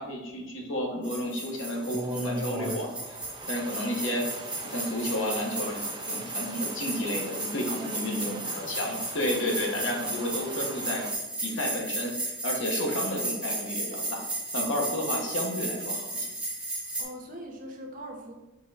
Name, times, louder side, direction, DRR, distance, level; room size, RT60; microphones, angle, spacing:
voice 1, 0.0-3.2 3.5-4.2 4.6-5.8 6.1-8.3 8.7-11.0 11.4-14.2 14.5-16.3, equal, 70° left, 0 dB, 1.3 m, -31 dB
sound 1, 1.0-17.0, right 2 dB, 5° right, 1.4 m, -34 dB
Stream, 1.5-11.1, right 2 dB, 20° right, 0.6 m, -40 dB
voice 2, 7.8-9.1 17.0-18.3, equal, 40° right, 1 dB, 1.0 m, -42 dB
4.6 x 3.8 x 5.6 m, 1.0 s
head